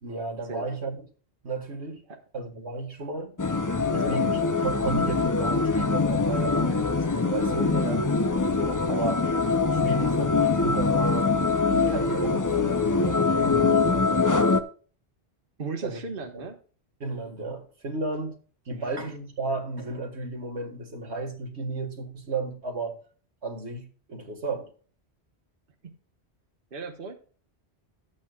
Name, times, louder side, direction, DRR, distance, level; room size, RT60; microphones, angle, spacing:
voice 1, 0.0-1.0 1.4-2.0 2.3-3.3 3.9-7.7 8.5-9.3 9.7-11.3 11.7-14.1 15.8-16.0 16.3-16.5 17.0-18.4 18.7-23.0 23.4-24.7, right 3 dB, 80° right, 2.0 m, -33 dB
sound 1, 3.4-14.6, left 4 dB, 25° left, 0.5 m, -23 dB
voice 2, 7.7-8.0 15.6-16.6 18.8-18.9 26.7-27.1, right 4 dB, 55° right, 1.3 m, -35 dB
13.0 x 8.7 x 2.4 m
omnidirectional pair, 1.1 m